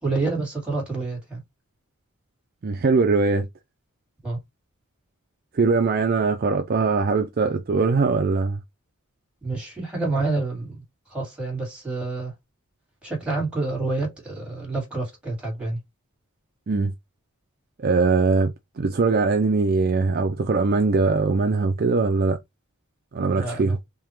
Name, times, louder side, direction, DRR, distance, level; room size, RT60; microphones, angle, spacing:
voice 1, 0.0-1.4 4.2-4.4 9.4-10.8 11.1-12.3 13.0-15.8 23.3-23.8, right 3 dB, 5° right, 2.0 m, -28 dB
voice 2, 2.6-3.5 5.5-8.6 16.7-16.9 17.8-22.4 23.1-23.8, right 4 dB, 45° right, 0.4 m, -21 dB
3.6 x 2.8 x 3.0 m
head